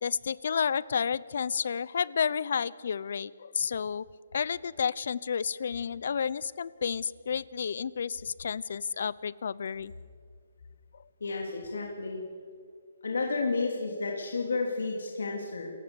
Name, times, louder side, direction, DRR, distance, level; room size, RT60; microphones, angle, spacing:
voice 1, 0.0-4.0 4.3-9.9, left 6 dB, 60° left, 20 dB, 0.7 m, -31 dB
voice 2, 11.2-12.2 13.0-15.7, left 3 dB, 80° left, 0 dB, 3.2 m, -31 dB
29.0 x 15.5 x 7.1 m, 2.1 s
hypercardioid pair, 165°, 0 cm